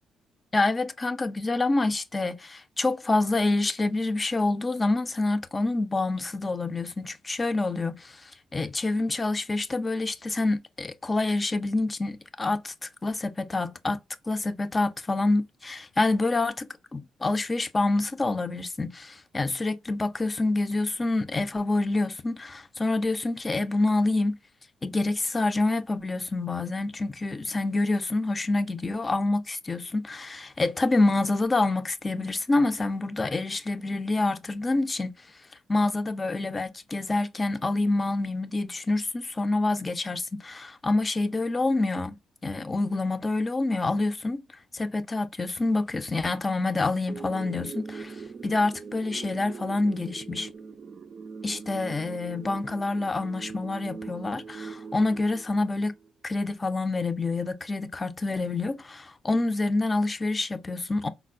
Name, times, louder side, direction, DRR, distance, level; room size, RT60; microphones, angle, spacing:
voice 1, 0.5-14.0 14.3-24.4 24.8-35.1 35.7-42.2 42.4-44.4 44.7-50.5 51.4-55.9 56.2-61.1, left 2 dB, 25° left, 0.5 m, -27 dB
sound 1, 47.1-56.1, right 5 dB, 45° right, 0.3 m, -41 dB
4.2 x 2.0 x 2.3 m
cardioid pair, 90°, 0 cm